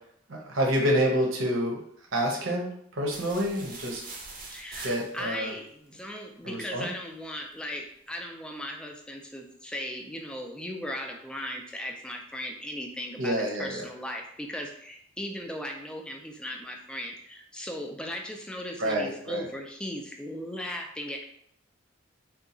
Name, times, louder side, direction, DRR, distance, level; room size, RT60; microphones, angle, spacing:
voice 1, 0.3-1.8 2.1-4.0 4.8-5.5 6.4-6.9 13.2-13.9 18.8-19.4, equal, 80° right, -1 dB, 0.8 m, -28 dB
sound 1, 3.1-5.5, right 3 dB, 45° right, 0.6 m, -43 dB
voice 2, 4.5-21.2, equal, 5° left, 2 dB, 0.3 m, -37 dB
2.8 x 2.3 x 3.7 m, 0.67 s
head